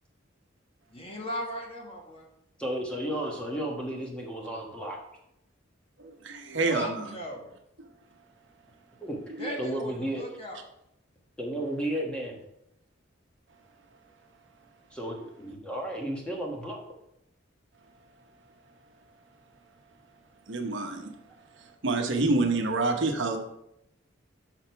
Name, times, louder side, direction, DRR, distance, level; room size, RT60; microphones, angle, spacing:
voice 1, 0.9-2.3 6.7-7.4 9.4-10.6, left 1 dB, 30° left, 0 dB, 1.2 m, -37 dB
voice 2, 2.6-5.0 9.0-10.2 11.4-12.4 14.9-16.8, right 1 dB, 5° left, -1 dB, 1.2 m, -33 dB
voice 3, 6.0-6.9 9.4-9.5 20.5-21.1 21.6-23.4, right 3 dB, 65° right, 4 dB, 0.9 m, -27 dB
6.4 x 6.0 x 4.6 m, 0.81 s
head